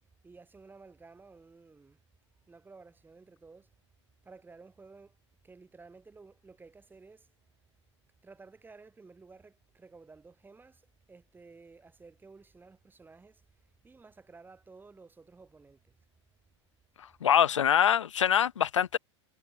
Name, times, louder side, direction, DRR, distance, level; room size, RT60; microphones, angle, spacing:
voice 1, 0.2-2.0 2.5-3.7 4.2-5.2 5.4-7.3 8.2-13.4 13.8-15.9, right 4 dB, 15° right, 2.8 m, -54 dB
voice 2, 17.2-19.0, left 9 dB, 90° left, 0.5 m, -24 dB
hypercardioid pair, 100°, 15 cm